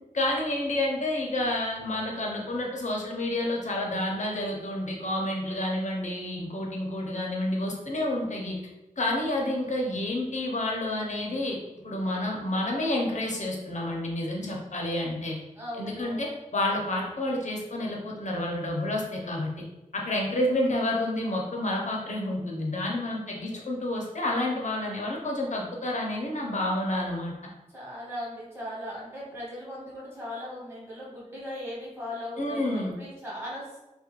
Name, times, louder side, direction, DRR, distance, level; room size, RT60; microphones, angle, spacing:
voice 1, 0.1-8.6 9.0-11.6 11.8-15.4 15.7-19.5 19.9-27.3 32.4-32.9, left 1 dB, 65° left, -1 dB, 0.6 m, -29 dB
voice 2, 15.5-16.3 23.2-23.6 27.7-33.8, left 1 dB, 15° right, -7 dB, 1.1 m, -38 dB
2.4 x 2.1 x 2.9 m, 1.0 s
wide cardioid pair, 85°, 14 cm